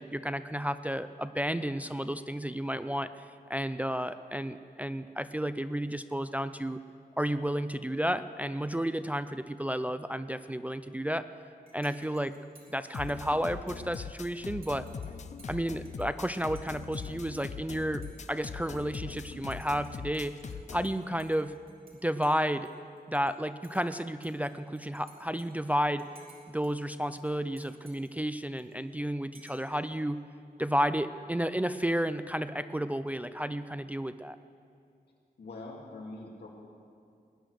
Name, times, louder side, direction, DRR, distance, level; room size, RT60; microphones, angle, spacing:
voice 1, 0.0-3.1 3.5-6.8 7.2-11.3 11.7-12.3 12.7-14.9 15.5-20.4 20.7-21.5 22.0-22.7 23.1-26.0 26.5-30.2 30.6-34.4, equal, 10° right, 11 dB, 0.3 m, -32 dB
Dishes pots and pans / Cutlery silverware / Chink clink, 11.7-22.0 22.2-23.3 23.6-26.7 27.0-29.0 29.3-29.7, right 3 dB, 65° right, 2.8 m, -60 dB
sound 1, 12.9-20.9, left 6 dB, 45° left, 0.5 m, -41 dB
voice 2, 35.4-36.5, left 2 dB, 85° left, -1 dB, 2.5 m, -43 dB
19.0 x 10.0 x 6.5 m, 2.4 s
wide cardioid pair, 155°, 16 cm